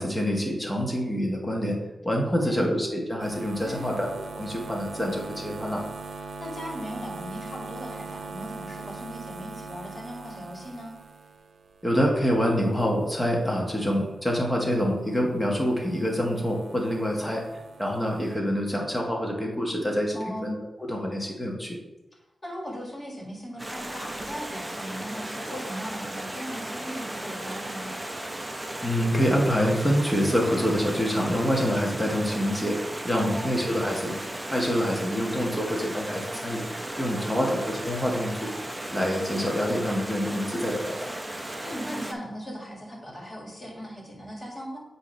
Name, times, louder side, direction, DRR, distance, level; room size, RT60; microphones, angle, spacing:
voice 1, 0.0-1.8 2.0-4.1 4.3-5.8 11.8-17.4 17.8-21.8 28.8-32.8 33.0-34.2 34.5-36.6 37.0-38.5 38.9-41.2, equal, 10° left, -1 dB, 1.1 m, -26 dB
voice 2, 2.2-2.7 3.6-4.1 6.1-10.9 17.1-17.4 20.1-20.6 22.4-27.9 33.1-33.6 37.2-37.5 41.6-44.8, equal, 25° left, -3 dB, 1.9 m, -38 dB
sound 1, 3.2-14.4 14.7-18.4, right 4 dB, 80° right, 0.6 m, -42 dB
Stream, 23.6-42.1, right 1 dB, 15° right, 0.6 m, -36 dB
8.1 x 2.7 x 5.0 m, 1.0 s
wide cardioid pair, 105°, 0 cm